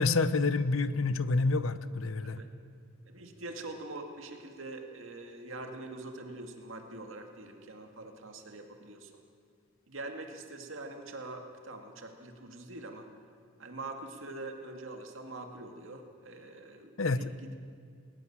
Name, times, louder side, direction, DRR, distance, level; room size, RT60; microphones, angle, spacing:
voice 1, 0.0-2.4 17.0-17.3, left 3 dB, 85° left, 14 dB, 0.9 m, -28 dB
voice 2, 3.1-9.2 9.9-13.1 13.6-17.6, right 2 dB, 70° right, 4 dB, 2.3 m, -44 dB
20.5 x 19.0 x 7.4 m, 2.2 s
head